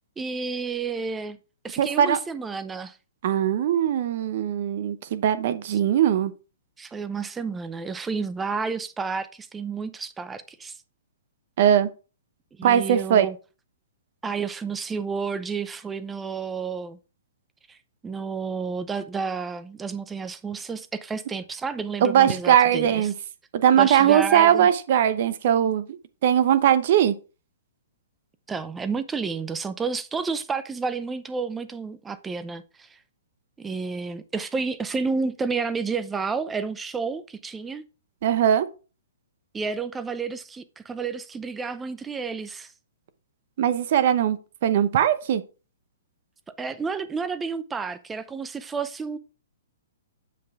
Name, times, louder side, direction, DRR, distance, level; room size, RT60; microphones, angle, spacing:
voice 1, 0.2-1.4 1.6-3.0 5.7-5.8 6.8-10.8 12.6-13.4 14.2-17.0 17.7-17.8 18.0-23.1 23.7-24.7 28.5-33.0 33.6-37.8 39.5-42.7 46.6-49.2, right 5 dB, 10° right, 0.6 m, -30 dB
voice 2, 1.8-2.2 3.2-6.3 11.6-11.9 12.6-13.3 22.0-23.1 23.5-27.1 38.2-38.7 43.6-44.4 44.6-45.4, right 10 dB, 55° right, 0.8 m, -20 dB
7.6 x 5.8 x 3.6 m
hypercardioid pair, 135°, 0 cm